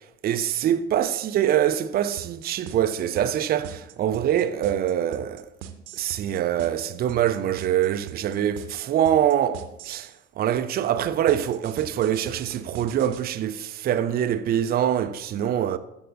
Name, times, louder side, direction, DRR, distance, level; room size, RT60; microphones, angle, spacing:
voice 1, 0.2-5.5 6.0-10.1 10.4-15.8, right 10 dB, 30° right, 0.5 m, -24 dB
sound 1, 2.2-10.2 11.3-13.2, right 10 dB, 55° right, 0.8 m, -40 dB
14.0 x 5.5 x 2.6 m
figure-of-eight pair, 60°, 33 cm